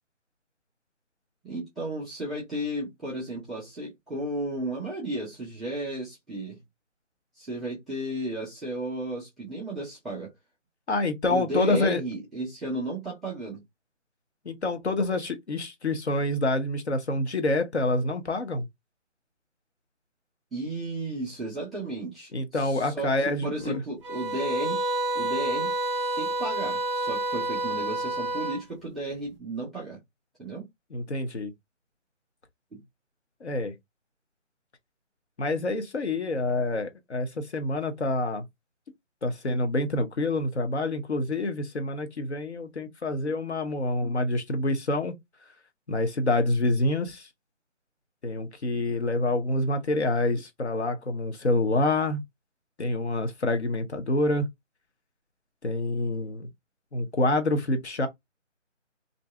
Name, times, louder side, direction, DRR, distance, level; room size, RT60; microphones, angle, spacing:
voice 1, 1.4-6.6 7.4-10.3 11.3-13.6 20.5-23.1 23.4-24.8 25.1-25.7 26.2-30.0 30.4-30.7 32.7-32.8, right 1 dB, ahead, 0.6 m, -34 dB
voice 2, 10.9-12.0 14.4-18.7 22.3-23.8 30.9-31.5 33.4-33.7 35.4-38.5 39.2-45.1 45.9-47.3 48.2-52.2 52.8-54.5 55.6-56.5 56.9-58.1, left 2 dB, 60° left, 0.9 m, -27 dB
sound 1, 24.0-28.6, right 2 dB, 20° right, 0.9 m, -29 dB
2.6 x 2.3 x 3.3 m
figure-of-eight pair, 170°, 38 cm